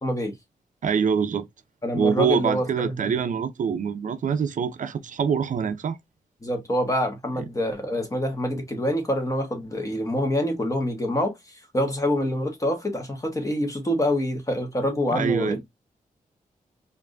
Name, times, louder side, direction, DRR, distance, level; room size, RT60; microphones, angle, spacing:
voice 1, 0.0-0.3 1.8-2.9 6.4-15.6, left 1 dB, 20° left, 1.3 m, -26 dB
voice 2, 0.8-1.5 1.9-6.0 15.1-15.6, right 6 dB, 65° right, 0.5 m, -25 dB
4.6 x 2.6 x 2.5 m
wide cardioid pair, 95°, 14 cm